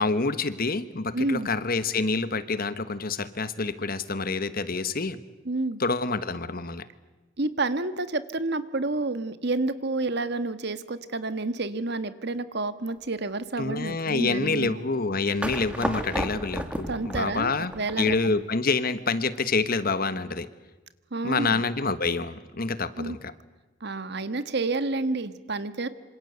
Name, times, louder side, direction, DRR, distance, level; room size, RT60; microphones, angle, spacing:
voice 1, 0.0-5.2 5.8-6.8 13.6-17.7 18.0-20.5 21.2-23.3, left 3 dB, 50° left, 13 dB, 1.3 m, -27 dB
voice 2, 1.1-1.5 5.4-5.8 7.4-14.8 16.9-18.4 21.1-21.6 23.0-23.2 23.8-25.9, right 2 dB, 60° right, 12 dB, 1.5 m, -29 dB
sound 1, 15.4-18.4, right 1 dB, 5° right, 2.1 m, -33 dB
27.0 x 26.0 x 8.1 m, 1.2 s
head